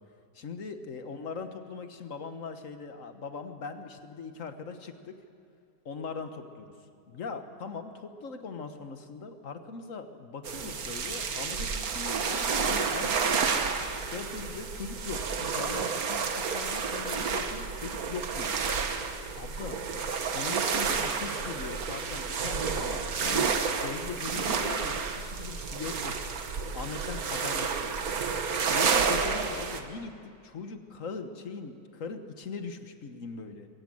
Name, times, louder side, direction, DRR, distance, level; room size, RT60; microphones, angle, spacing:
voice 1, 0.3-5.2 5.9-6.7 7.1-13.6 14.1-18.7 19.4-19.8 20.2-26.1 26.7-28.1 28.7-33.7, left 4 dB, 55° left, 8 dB, 1.6 m, -40 dB
sound 1, 10.4-29.8, right 5 dB, 60° right, 1.7 m, -30 dB
22.5 x 16.0 x 7.8 m, 2.5 s
omnidirectional pair, 1.8 m